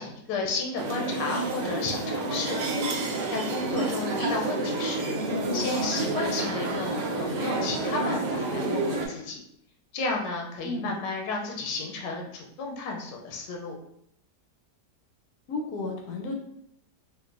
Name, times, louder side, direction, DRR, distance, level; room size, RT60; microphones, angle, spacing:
voice 1, 0.0-2.6 3.3-5.1 5.5-9.4 9.9-13.7, left 3 dB, 85° left, 0 dB, 1.3 m, -32 dB
sound 1, 0.8-9.1, right 2 dB, 80° right, 1.2 m, -29 dB
voice 2, 10.6-11.0 15.5-16.3, left 2 dB, 70° left, 2 dB, 0.9 m, -33 dB
3.7 x 2.5 x 2.4 m, 0.74 s
omnidirectional pair, 1.8 m